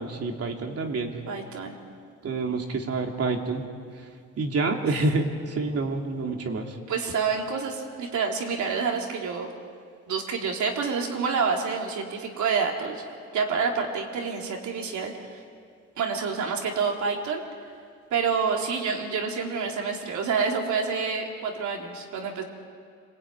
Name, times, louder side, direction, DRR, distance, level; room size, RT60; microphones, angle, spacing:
voice 1, 0.0-1.1 2.2-3.6 4.4-6.8, right 3 dB, 55° right, 2 dB, 3.1 m, -28 dB
voice 2, 1.3-1.8 6.9-9.5 10.1-13.0 13.3-15.4 16.0-17.4 18.1-22.4, right 5 dB, 70° right, 1 dB, 3.9 m, -28 dB
26.5 x 20.0 x 9.5 m, 2.2 s
cardioid pair, 90°, 30 cm